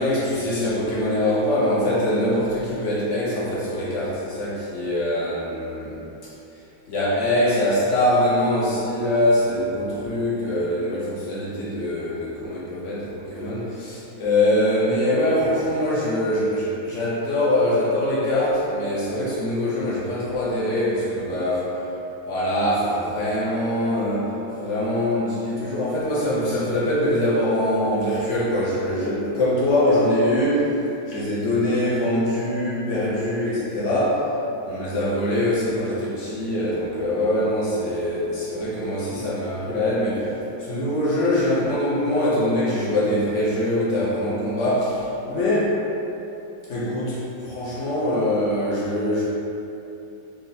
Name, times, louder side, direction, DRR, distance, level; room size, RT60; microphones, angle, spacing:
voice 1, 0.0-5.9 6.9-21.8 22.3-30.7 31.1-34.3 34.6-45.7 46.7-49.2, left 1 dB, 60° left, -7 dB, 0.7 m, -23 dB
4.4 x 2.5 x 4.0 m, 2.9 s
omnidirectional pair, 2.2 m